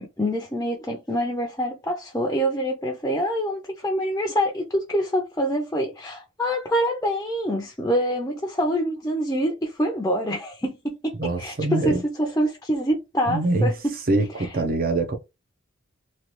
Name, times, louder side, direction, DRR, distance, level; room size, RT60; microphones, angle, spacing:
voice 1, 0.0-11.5 11.8-13.7, equal, 15° left, 0.6 m, -26 dB
voice 2, 11.2-12.0 13.3-15.2, right 2 dB, 45° right, 0.7 m, -24 dB
3.2 x 2.5 x 2.9 m
head